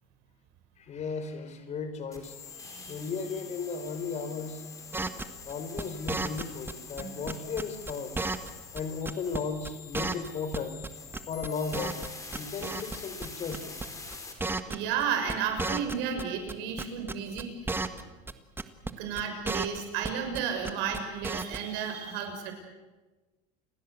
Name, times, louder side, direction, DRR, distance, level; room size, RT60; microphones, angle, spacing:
voice 1, 0.8-2.4 2.8-4.6 5.4-8.2 8.7-10.8 11.3-12.0 12.3-14.1, left 5 dB, 35° left, 10 dB, 3.8 m, -35 dB
sound 1, 2.1-14.3, left 5 dB, 15° left, 5.0 m, -45 dB
voice 2, 2.6-3.0 7.0-7.1 14.7-17.8 19.0-22.5, right 7 dB, 65° right, 6 dB, 6.6 m, -33 dB
sound 2, 4.9-6.7 7.0-8.5 8.7-8.8 9.0-9.4 9.6-9.7 9.9-10.9 11.1-12.1 12.3-13.0 13.2-13.3 13.5-13.9 14.1-14.2 14.4-15.0 15.3-16.5 16.8-18.0 18.3-18.4 18.6-18.9 19.2-20.4 20.6-21.0 21.2-21.6, right 3 dB, 10° right, 1.5 m, -33 dB
29.5 x 20.0 x 8.3 m, 1.2 s
supercardioid pair, 125°, 19 cm